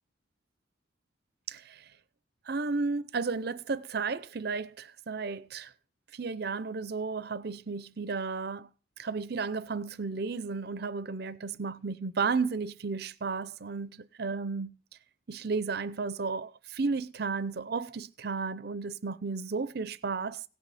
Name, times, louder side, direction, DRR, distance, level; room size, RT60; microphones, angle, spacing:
voice 1, 1.5-1.8 2.5-5.7 6.1-8.7 9.0-14.7 15.3-20.4, right 4 dB, 55° right, 0.6 m, -33 dB
17.0 x 6.3 x 4.1 m
head